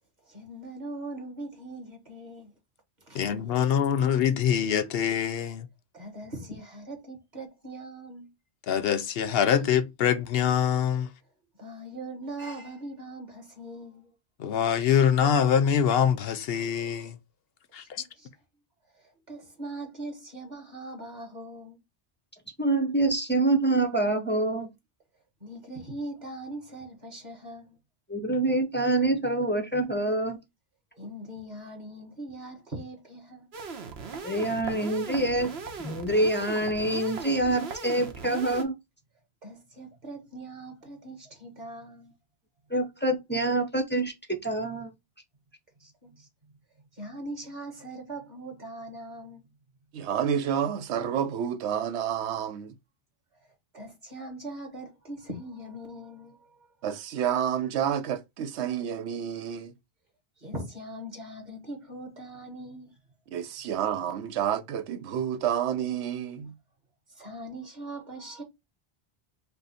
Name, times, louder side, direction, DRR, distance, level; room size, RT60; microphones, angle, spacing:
voice 1, 0.2-2.5 3.0-3.3 5.9-8.3 11.6-14.1 17.8-18.3 18.9-21.8 25.4-27.8 30.9-33.5 39.4-42.1 45.8-46.5 46.9-49.4 53.3-56.6 60.4-63.0 67.1-68.4, right 1 dB, 40° right, 1.7 m, -41 dB
voice 2, 3.1-5.7 8.7-11.1 14.4-17.2 17.7-18.0, left 8 dB, 65° left, 0.8 m, -24 dB
voice 3, 22.6-24.7 28.1-30.4 34.2-35.5 35.8-38.7 42.7-44.9, right 2 dB, 15° left, 0.5 m, -26 dB
sound 1, 33.5-38.6, right 5 dB, 70° right, 1.1 m, -39 dB
voice 4, 49.9-52.8 56.8-59.7 63.3-66.5, right 9 dB, 90° right, 0.9 m, -29 dB
5.5 x 2.0 x 4.1 m
omnidirectional pair, 1.1 m